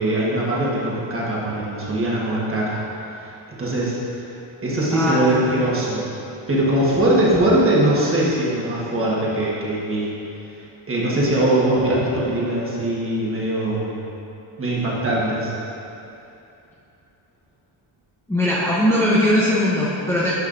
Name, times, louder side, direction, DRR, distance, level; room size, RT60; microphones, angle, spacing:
voice 1, 0.0-2.8 3.5-4.0 4.6-6.1 6.5-10.1 10.9-14.0 14.6-15.5, right 1 dB, 25° right, -6 dB, 1.3 m, -21 dB
voice 2, 4.9-5.6 18.3-20.3, left 1 dB, 5° left, -8 dB, 0.6 m, -20 dB
10.5 x 5.3 x 2.6 m, 2.8 s
wide cardioid pair, 155°, 48 cm